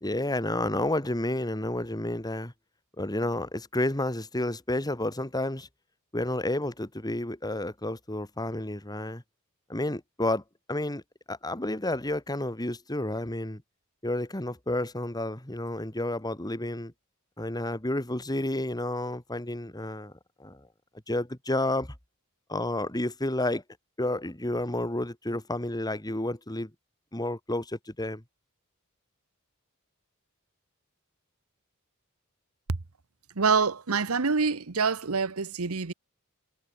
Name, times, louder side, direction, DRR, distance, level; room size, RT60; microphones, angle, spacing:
voice 1, 0.0-2.5 3.0-5.7 6.1-9.2 9.7-10.4 10.7-11.0 11.3-13.6 14.0-16.9 17.4-20.1 20.4-20.6 21.1-21.9 22.5-23.6 24.0-26.7 27.1-28.2, left 1 dB, 20° left, 2.4 m, -30 dB
voice 2, 33.4-35.9, right 5 dB, 80° right, 1.1 m, -26 dB
head